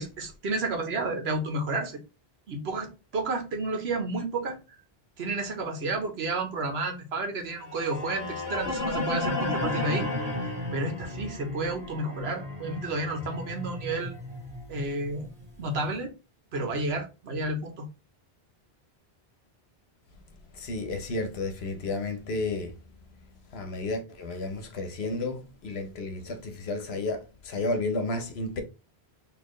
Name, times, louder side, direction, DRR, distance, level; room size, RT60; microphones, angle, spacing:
voice 1, 0.0-2.0 2.5-4.6 5.2-10.1 10.7-14.1 14.7-15.3 15.6-16.1 16.5-17.9, right 2 dB, 80° right, 1.3 m, -31 dB
sound 1, 7.6-15.7, left 2 dB, 5° right, 2.0 m, -33 dB
voice 2, 20.5-22.7 23.5-28.6, left 2 dB, 85° left, 1.2 m, -32 dB
4.3 x 3.0 x 3.1 m
omnidirectional pair, 1.0 m